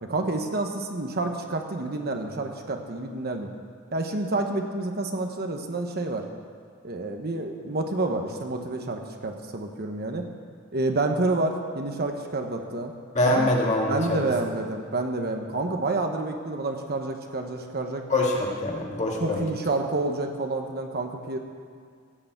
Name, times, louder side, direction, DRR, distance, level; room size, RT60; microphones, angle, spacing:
voice 1, 0.0-3.5 3.9-6.2 6.8-10.2 10.7-12.9 13.2-13.5 13.9-18.0 19.2-21.4, right 2 dB, 50° right, 4 dB, 1.2 m, -29 dB
voice 2, 13.1-14.2 18.1-19.4, left 1 dB, 35° left, -1 dB, 2.1 m, -24 dB
16.0 x 6.9 x 8.0 m, 2.2 s
head